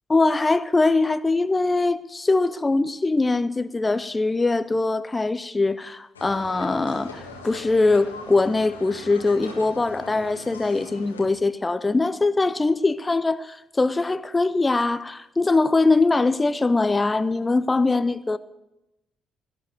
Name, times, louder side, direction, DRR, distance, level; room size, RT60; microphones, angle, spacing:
voice 1, 0.1-18.4, left 3 dB, 25° left, 0.6 m, -22 dB
sound 1, 6.1-11.3, left 3 dB, 85° left, 1.6 m, -41 dB
17.5 x 9.2 x 6.6 m
figure-of-eight pair, 40°, 0 cm